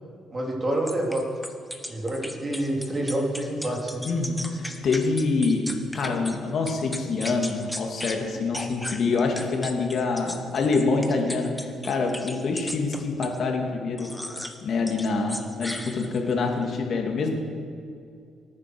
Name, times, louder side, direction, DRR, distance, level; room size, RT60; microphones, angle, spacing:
voice 1, 0.3-1.3 1.9-4.0, right 1 dB, 30° right, -1 dB, 3.7 m, -27 dB
sound 1, 0.9-6.4 6.7-8.2 8.5-13.4 14.0-14.6 14.9-16.3, left 1 dB, 5° left, 1.5 m, -36 dB
voice 2, 4.0-5.7 5.9-11.6 11.8-14.1 14.6-17.3, left 4 dB, 60° left, 2 dB, 2.7 m, -26 dB
22.5 x 9.6 x 6.4 m, 2.4 s
cardioid pair, 90°, 0 cm